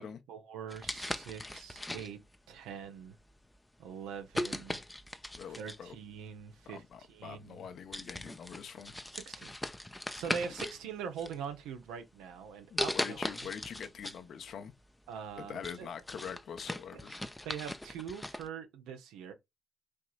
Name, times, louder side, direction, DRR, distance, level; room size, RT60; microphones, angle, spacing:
voice 1, 0.0-2.2 2.5-3.2 3.8-4.8 5.6-6.8 7.1-7.6 9.1-9.5 10.1-13.3 15.1-15.9 16.9-17.0 17.4-19.3, right 7 dB, 80° right, 0.8 m, -43 dB
sound 1, 0.7-2.4 3.1-3.3 4.3-5.9 7.0-7.1 7.5-7.7 7.9-10.8 11.2-11.9 12.8-14.2 14.6-14.7 15.2-18.5, left 1 dB, 10° left, 0.5 m, -39 dB
voice 2, 5.3-6.0 6.6-8.9 12.7-14.7 15.4-17.1, left 7 dB, 60° left, 0.7 m, -44 dB
4.5 x 2.9 x 2.3 m
supercardioid pair, 60°, 0 cm